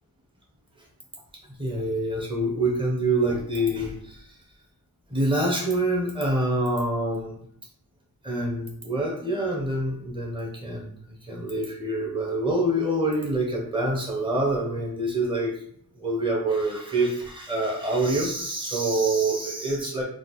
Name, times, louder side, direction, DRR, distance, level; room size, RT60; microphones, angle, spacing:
voice 1, 1.6-4.3 5.1-7.4 8.2-10.9 11.2-15.5 16.0-20.0, right 1 dB, 15° right, -2 dB, 1.3 m, -26 dB
4.5 x 2.0 x 4.2 m, 0.63 s
wide cardioid pair, 75°, 37 cm